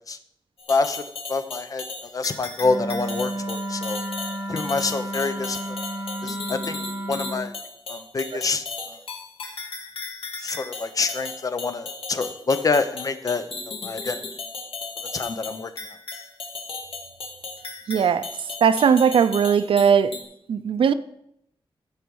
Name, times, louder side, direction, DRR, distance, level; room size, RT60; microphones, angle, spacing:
sound 1, 0.6-20.2, left 3 dB, 80° left, 1.9 m, -36 dB
voice 1, 0.7-1.0 1.3-1.8 2.1-4.0 4.5-5.8 6.2-6.8 7.1-7.6 7.9-9.0 10.4-13.5 13.8-14.2 15.1-15.7, left 4 dB, 40° left, 0.7 m, -26 dB
Wind instrument woodwind instrument, 2.6-7.5, right 1 dB, 10° right, 2.3 m, -32 dB
voice 2, 17.9-18.3 18.6-20.1 20.5-20.9, right 7 dB, 75° right, 0.5 m, -18 dB
15.0 x 5.1 x 4.7 m
wide cardioid pair, 155°, 9 cm